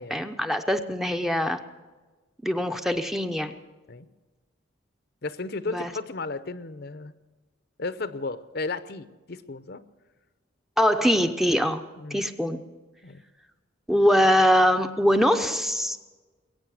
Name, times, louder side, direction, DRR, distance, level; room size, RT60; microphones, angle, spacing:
voice 1, 0.1-1.6 2.4-3.5 5.7-5.9 10.8-11.8 12.1-12.6 13.9-16.0, equal, ahead, 7 dB, 0.7 m, -22 dB
voice 2, 5.2-7.1 7.8-9.8 12.0-12.2 13.0-13.2, left 3 dB, 50° left, 13 dB, 0.7 m, -34 dB
21.5 x 8.8 x 7.7 m, 1.3 s
head